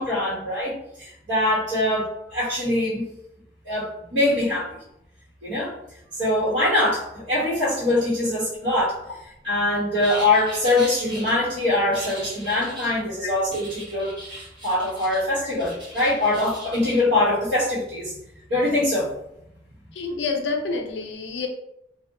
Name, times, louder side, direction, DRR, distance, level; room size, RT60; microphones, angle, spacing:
voice 1, 0.0-3.0 3.6-4.8 5.4-5.7 6.2-9.0 9.4-18.2 18.5-19.1, left 1 dB, 75° right, -9 dB, 1.0 m, -23 dB
Writing with a Sharpie, 10.0-11.3 11.9-13.0 13.5-15.2 15.5-17.0, right 1 dB, 25° right, 0.9 m, -39 dB
voice 2, 19.9-21.5, left 4 dB, 70° left, 3 dB, 0.5 m, -29 dB
2.7 x 2.1 x 2.6 m, 0.81 s
head